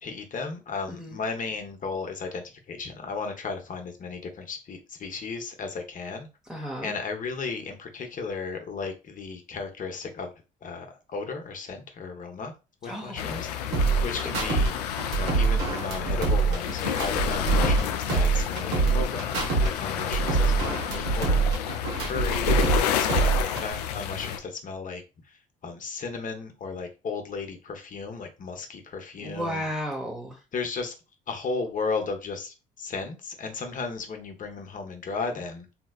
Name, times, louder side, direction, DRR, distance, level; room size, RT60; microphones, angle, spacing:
voice 1, 0.0-6.3 6.8-10.3 10.6-12.5 12.8-13.6 14.0-14.8 15.1-21.4 21.7-22.5 23.0-23.3 23.6-29.7 30.5-31.0 31.3-35.7, left 4 dB, 40° left, 5 dB, 0.9 m, -35 dB
voice 2, 6.5-6.9 12.9-13.3 29.2-30.4, equal, 5° right, -2 dB, 0.8 m, -33 dB
sound 1, 13.2-24.4, left 9 dB, 85° left, 0.4 m, -30 dB
sound 2, 13.7-14.7 15.0-17.8 18.1-19.7 20.0-22.8 23.1-23.7, right 4 dB, 75° right, 1.0 m, -24 dB
3.2 x 2.8 x 2.3 m, 0.29 s
hypercardioid pair, 55°, 20 cm